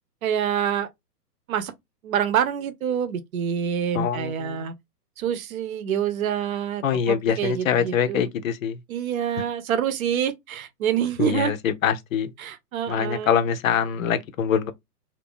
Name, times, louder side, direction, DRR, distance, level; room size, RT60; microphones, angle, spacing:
voice 1, 0.2-0.9 1.5-1.7 2.0-4.7 5.2-8.3 8.9-11.5 12.4-13.4, right 9 dB, 60° right, 0.8 m, -26 dB
voice 2, 3.9-4.7 6.8-8.8 11.2-12.3 12.9-14.7, left 8 dB, 55° left, 0.7 m, -24 dB
2.7 x 2.5 x 3.6 m
hypercardioid pair, 150°, 48 cm